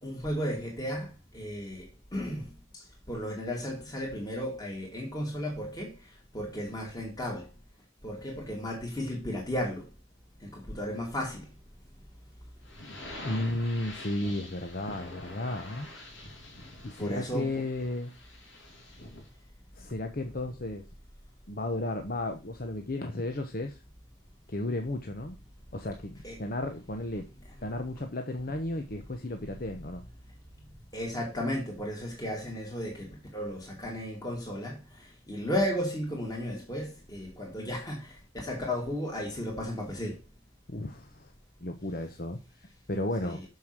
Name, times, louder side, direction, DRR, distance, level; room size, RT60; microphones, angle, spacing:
voice 1, 0.0-2.4 2.7-2.8 3.1-6.0 6.3-7.5 8.0-9.8 10.5-11.4 17.0-17.6 26.2-26.4 30.9-34.8 35.3-38.1 38.4-40.2 43.2-43.4, equal, 20° left, 2.7 m, -34 dB
sound 1, 12.6-19.3, left 1 dB, 75° left, 2.9 m, -46 dB
voice 2, 13.2-15.9 16.8-18.1 19.7-20.9 21.5-23.8 24.5-25.4 25.7-27.3 27.6-30.0 40.7-41.3 41.6-43.6, left 1 dB, 45° left, 1.0 m, -34 dB
6.8 x 6.7 x 6.1 m
head